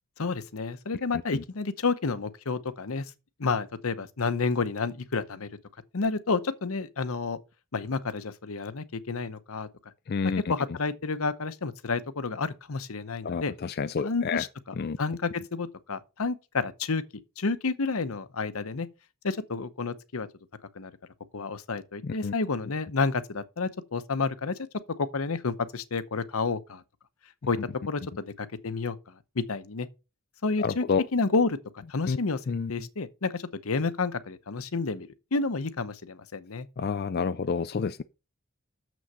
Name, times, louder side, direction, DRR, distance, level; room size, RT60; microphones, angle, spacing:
voice 1, 0.2-3.1 3.4-5.5 5.9-7.4 7.7-9.7 10.2-13.5 14.0-17.0 17.4-18.9 19.2-20.3 20.7-20.9 21.3-24.6 25.0-26.8 27.5-27.6 27.9-29.0 29.4-29.9 30.4-30.8 31.1-32.4 32.7-36.7, left 4 dB, 80° left, 0.8 m, -30 dB
voice 2, 10.1-10.4 13.2-14.4 14.8-15.0 22.0-22.3 30.6-31.0 32.1-32.2 32.5-32.7 36.8-38.0, left 5 dB, 45° left, 0.4 m, -29 dB
7.0 x 6.2 x 5.5 m
head